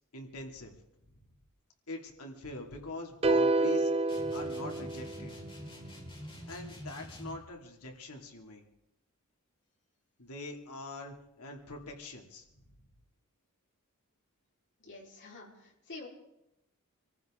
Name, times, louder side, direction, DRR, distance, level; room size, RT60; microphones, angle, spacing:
voice 1, 0.1-0.7 1.9-3.9 4.3-5.3 6.5-8.6 10.2-12.6, left 2 dB, 85° left, 2 dB, 2.7 m, -43 dB
sound 1, 3.2-5.5, right 2 dB, 25° right, 0.5 m, -28 dB
sound 2, 4.1-7.5, equal, 25° left, 5.1 m, -45 dB
voice 2, 14.8-16.1, left 3 dB, 55° left, -2 dB, 4.3 m, -48 dB
26.5 x 14.5 x 3.8 m, 0.84 s
head